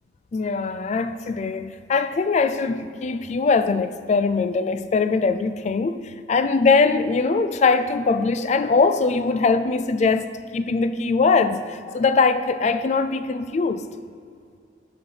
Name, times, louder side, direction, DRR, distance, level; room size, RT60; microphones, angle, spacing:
voice 1, 0.3-13.9, left 4 dB, 40° left, 0.3 m, -21 dB
6.7 x 5.6 x 5.6 m
head